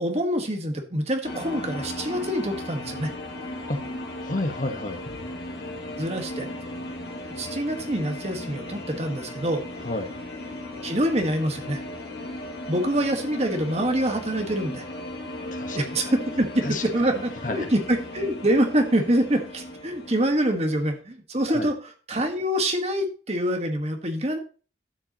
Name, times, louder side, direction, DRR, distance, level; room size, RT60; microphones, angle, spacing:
voice 1, 0.0-3.1 6.0-6.5 7.4-9.6 10.8-11.8 12.7-14.8 15.7-24.4, right 1 dB, 35° right, 4 dB, 1.5 m, -25 dB
sound 1, 1.2-21.0, left 1 dB, 60° left, 2.0 m, -37 dB
voice 2, 4.2-5.2 9.8-10.1 15.5-16.1 16.6-16.8 17.1-17.7 21.5-21.7, left 2 dB, 45° left, 6 dB, 1.2 m, -31 dB
12.0 x 7.9 x 3.0 m, 0.36 s
head